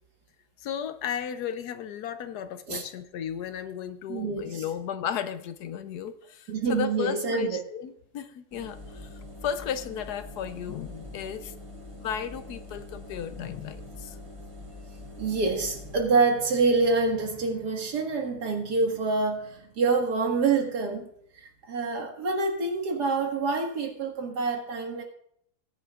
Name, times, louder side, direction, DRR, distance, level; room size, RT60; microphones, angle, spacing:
voice 1, 0.6-11.5 12.0-14.2, left 8 dB, 75° left, 11 dB, 1.2 m, -34 dB
voice 2, 4.1-4.6 6.5-7.6 15.2-21.1 21.3-25.0, right 4 dB, 70° right, 2 dB, 2.2 m, -26 dB
Engine, 8.5-16.0, left 2 dB, 15° right, 2.5 m, -44 dB
18.5 x 9.7 x 2.4 m, 0.68 s
omnidirectional pair, 1.8 m